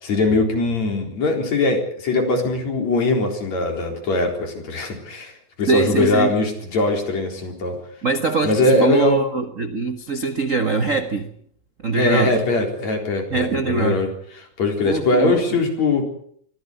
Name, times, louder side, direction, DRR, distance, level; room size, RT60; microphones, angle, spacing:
voice 1, 0.0-5.3 5.6-7.8 8.4-9.2 12.0-14.1 14.6-16.0, left 2 dB, 60° left, 3 dB, 5.3 m, -21 dB
voice 2, 5.7-6.3 8.0-11.3 11.8-12.4 13.3-14.0 14.8-15.4, right 4 dB, 70° right, 8 dB, 0.7 m, -22 dB
24.0 x 16.0 x 8.0 m, 0.64 s
omnidirectional pair, 3.6 m